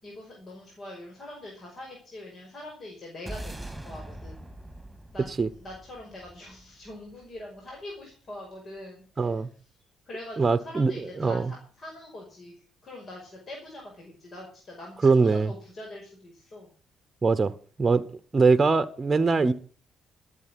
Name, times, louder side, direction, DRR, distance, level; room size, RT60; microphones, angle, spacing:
voice 1, 0.0-4.5 5.1-9.4 10.1-12.6 12.8-16.7, left 1 dB, 45° left, 5.6 m, -43 dB
sound 1, 3.3-7.7, right 1 dB, 5° right, 3.6 m, -42 dB
voice 2, 9.2-9.5 10.4-11.5 15.0-15.5 17.2-17.5 17.8-18.0 18.3-19.5, right 4 dB, 30° right, 1.1 m, -22 dB
14.5 x 8.3 x 7.7 m
hypercardioid pair, 45°, 0 cm